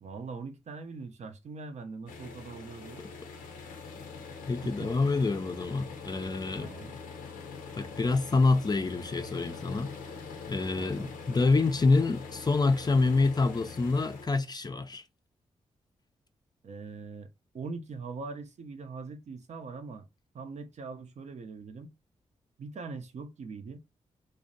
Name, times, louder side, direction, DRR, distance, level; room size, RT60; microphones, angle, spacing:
voice 1, 0.0-3.0 4.6-4.9 6.6-7.0 10.8-11.1 16.6-17.3 17.5-20.1 20.3-21.9 22.6-23.8, right 4 dB, 55° right, 0.5 m, -42 dB
sound 1, 2.1-14.3, left 5 dB, 90° left, 0.5 m, -43 dB
voice 2, 4.5-6.7 7.8-9.9 10.5-15.0, left 3 dB, 30° left, 0.4 m, -27 dB
2.5 x 2.1 x 2.5 m
supercardioid pair, 40°, 14 cm